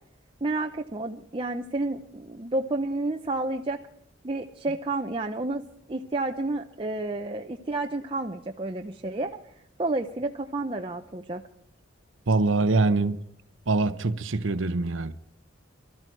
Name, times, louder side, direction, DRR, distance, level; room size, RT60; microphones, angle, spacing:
voice 1, 0.4-3.8 4.2-9.3 9.8-11.4, right 2 dB, 30° right, 0.7 m, -30 dB
voice 2, 12.3-13.2 13.7-15.1, right 3 dB, 90° right, 0.8 m, -24 dB
23.5 x 13.5 x 4.6 m
head